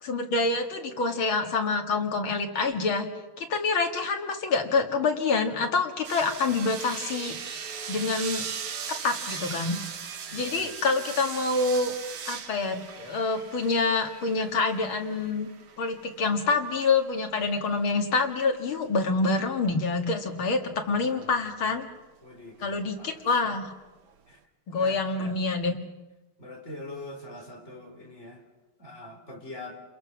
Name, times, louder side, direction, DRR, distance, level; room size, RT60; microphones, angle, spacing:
voice 1, 0.0-3.1 3.4-7.4 7.9-8.4 9.0-9.8 10.3-11.9 12.3-15.5 15.8-21.9 22.6-23.7 24.7-25.8, left 3 dB, 80° left, 4 dB, 2.9 m, -26 dB
sound 1, 6.0-17.4 20.8-21.3 22.4-22.5, right 7 dB, 60° right, 1.7 m, -39 dB
voice 2, 10.3-10.7 20.9-21.5 22.2-23.5 24.3-24.4 24.7-25.4 26.4-28.5 28.8-29.8, left 1 dB, 35° left, 2 dB, 3.9 m, -44 dB
29.5 x 22.0 x 6.2 m, 1.1 s
omnidirectional pair, 2.2 m